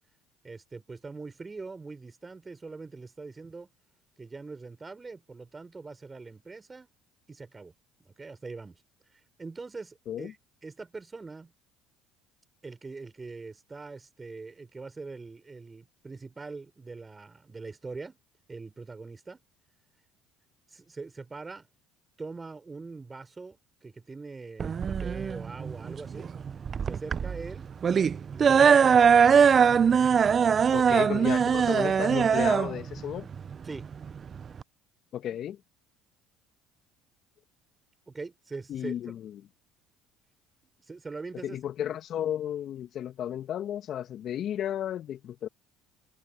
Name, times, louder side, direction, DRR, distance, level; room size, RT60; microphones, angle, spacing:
voice 1, 0.4-3.7 4.2-6.9 7.3-7.7 8.0-8.8 9.1-10.4 10.6-11.5 12.6-18.2 18.5-19.4 20.7-21.7 22.2-26.4 26.8-27.7 28.3-29.2 33.6-33.9 38.1-39.1 40.8-41.6, right 4 dB, 25° right, 5.5 m, -42 dB
sound 1, 24.6-34.6, right 7 dB, 40° right, 0.7 m, -22 dB
voice 2, 30.7-33.3 35.1-35.6 38.7-39.3 41.4-45.5, left 10 dB, 50° left, 1.6 m, -33 dB
hypercardioid pair, 65°, 0 cm